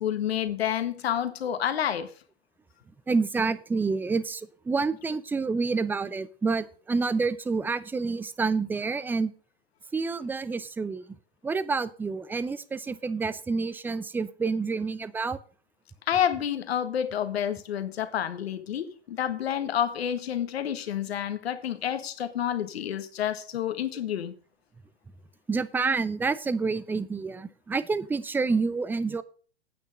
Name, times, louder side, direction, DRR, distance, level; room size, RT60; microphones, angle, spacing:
voice 1, 0.0-2.1 16.1-24.3, left 10 dB, 70° left, 1.6 m, -29 dB
voice 2, 3.1-9.3 9.9-11.0 11.4-15.4 25.5-29.2, right 4 dB, 5° right, 0.5 m, -28 dB
9.4 x 8.5 x 5.2 m
hypercardioid pair, 105°, 33 cm